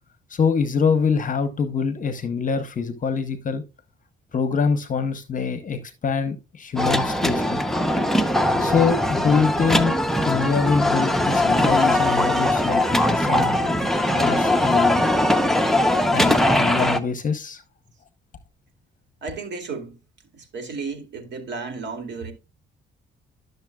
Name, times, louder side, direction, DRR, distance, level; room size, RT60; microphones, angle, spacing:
voice 1, 0.3-3.6 4.3-7.6 8.6-10.0 10.2-13.6 14.1-15.1 16.1-17.6, left 5 dB, 40° left, 0.9 m, -24 dB
sound 1, 6.8-17.0, left 1 dB, ahead, 0.8 m, -20 dB
voice 2, 19.2-20.0 20.3-22.3, right 4 dB, 65° right, 2.4 m, -33 dB
11.5 x 6.7 x 2.3 m
cardioid pair, 90°, 20 cm